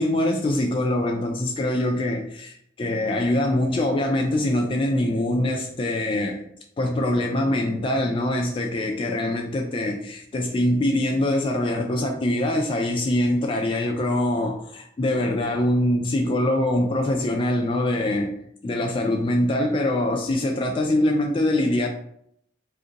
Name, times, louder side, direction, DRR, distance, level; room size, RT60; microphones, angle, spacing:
voice 1, 0.0-6.4 6.8-18.3 18.6-21.9, left 1 dB, 25° left, 2 dB, 0.3 m, -23 dB
2.5 x 2.5 x 3.8 m, 0.71 s
head